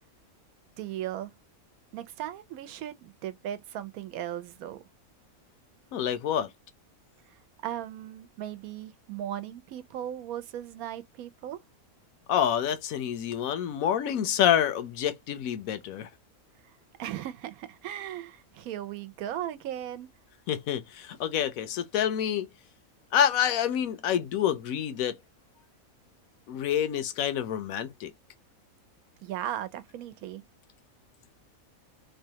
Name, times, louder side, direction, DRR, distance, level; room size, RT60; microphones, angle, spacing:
voice 1, 0.8-1.3 1.9-4.8 7.3-11.6 17.0-20.1 29.2-30.4, right 11 dB, 90° right, 1.0 m, -37 dB
voice 2, 5.9-6.5 12.3-16.1 20.5-22.5 23.1-25.2 26.5-28.1, left 9 dB, 80° left, 1.0 m, -27 dB
3.1 x 2.2 x 2.7 m
omnidirectional pair, 1.5 m